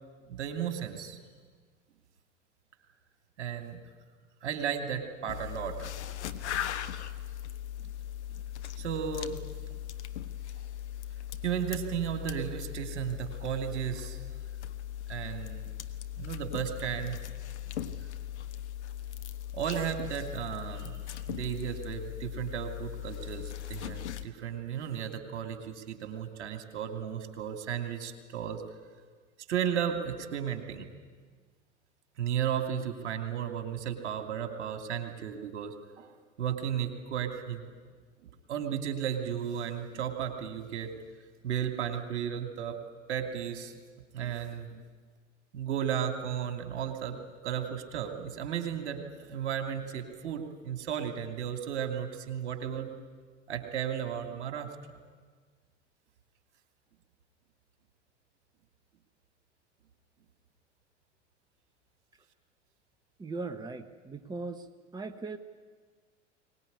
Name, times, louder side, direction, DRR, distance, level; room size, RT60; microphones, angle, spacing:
voice 1, 0.3-1.2 3.4-3.8 4.4-5.9 6.3-6.4 7.8-7.9 8.8-9.4 11.4-14.2 15.1-15.7 16.2-17.2 19.5-21.0 21.3-28.6 29.5-30.9 32.2-36.1 36.4-37.7 38.5-40.9 41.4-42.8 43.1-43.8 44.1-44.8 45.5-52.9 53.5-54.7, right 9 dB, 65° right, 6 dB, 2.8 m, -34 dB
sound 1, 5.3-24.3, left 11 dB, 65° left, 1.4 m, -39 dB
voice 2, 63.2-64.7 64.9-65.4, right 3 dB, 10° right, 9 dB, 1.1 m, -38 dB
23.0 x 19.5 x 9.7 m, 1.5 s
figure-of-eight pair, 80°, 37 cm